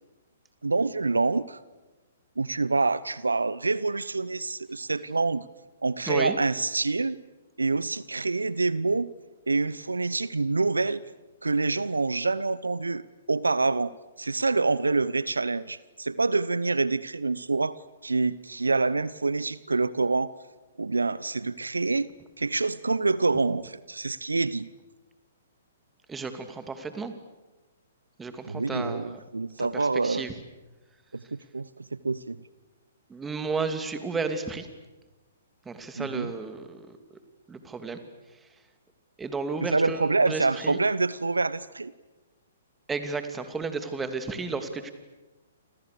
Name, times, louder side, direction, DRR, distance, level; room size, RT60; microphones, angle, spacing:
voice 1, 0.6-1.6 2.4-5.4 5.8-7.2 7.6-9.1 9.5-11.0 11.4-13.0 13.3-13.9 14.2-20.3 20.8-22.1 22.4-24.7 28.5-30.3 31.1-32.4 36.0-36.3 39.7-41.9, right 3 dB, 80° right, 19 dB, 0.8 m, -26 dB
voice 2, 6.1-6.4 26.1-27.1 28.2-29.2 29.6-30.3 33.1-34.7 35.7-37.0 37.5-38.0 39.2-40.8 42.9-44.9, right 4 dB, 10° right, 8 dB, 2.7 m, -33 dB
29.0 x 27.0 x 6.9 m, 1.1 s
figure-of-eight pair, 120°, 0 cm